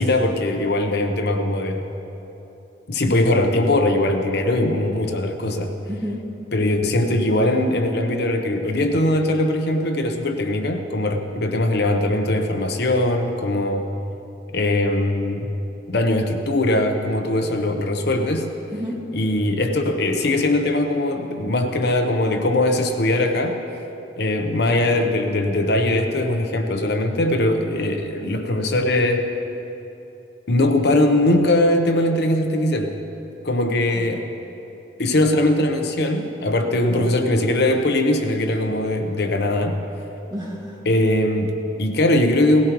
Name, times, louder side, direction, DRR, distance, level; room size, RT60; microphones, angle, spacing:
voice 1, 0.0-1.8 2.9-5.7 6.5-13.9 14.5-15.5 15.9-18.5 19.1-23.6 24.2-29.3 30.5-32.9 33.4-34.2 35.0-39.8 40.9-42.7, left 1 dB, 60° left, 5 dB, 0.9 m, -20 dB
voice 2, 5.9-6.3 17.4-17.6 18.7-19.1 33.6-34.1 36.8-37.1 40.3-40.8, equal, 20° right, -3 dB, 1.9 m, -32 dB
18.0 x 17.0 x 3.1 m, 3.0 s
head